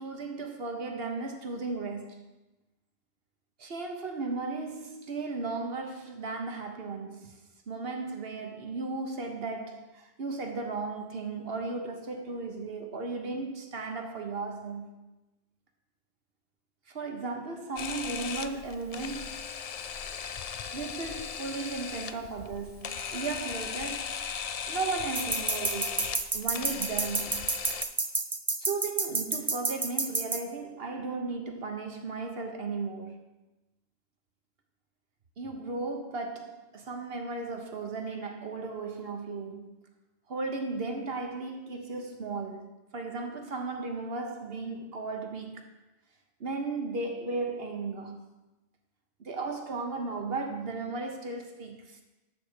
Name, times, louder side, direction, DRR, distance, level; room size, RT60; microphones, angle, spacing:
voice 1, 0.0-2.3 3.6-7.4 7.7-14.9 16.9-19.5 20.7-24.2 24.7-27.6 28.6-33.3 35.4-39.8 40.3-45.7 46.4-48.3 49.2-52.0, right 3 dB, 60° right, 1.2 m, -35 dB
Camera, 17.8-27.8, left 7 dB, 55° left, 0.4 m, -37 dB
sound 1, 25.2-30.4, right 3 dB, 30° right, 0.3 m, -29 dB
12.5 x 4.1 x 6.7 m
omnidirectional pair, 1.2 m